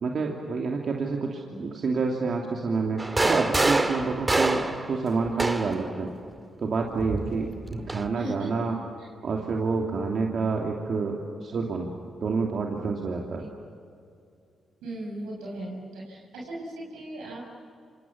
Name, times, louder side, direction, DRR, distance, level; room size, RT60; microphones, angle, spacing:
voice 1, 0.0-6.1 6.6-8.8 9.2-11.9 12.2-13.5, right 4 dB, 55° right, 1 dB, 2.8 m, -28 dB
sound 1, 3.0-5.9 7.0-8.1, right 2 dB, 25° right, 2.2 m, -26 dB
voice 2, 8.1-8.5 9.0-9.1 9.3-9.4 13.4-13.5 14.8-17.4, right 1 dB, 75° right, -3 dB, 6.7 m, -37 dB
27.5 x 26.0 x 7.3 m, 2.4 s
hypercardioid pair, 40°, 0 cm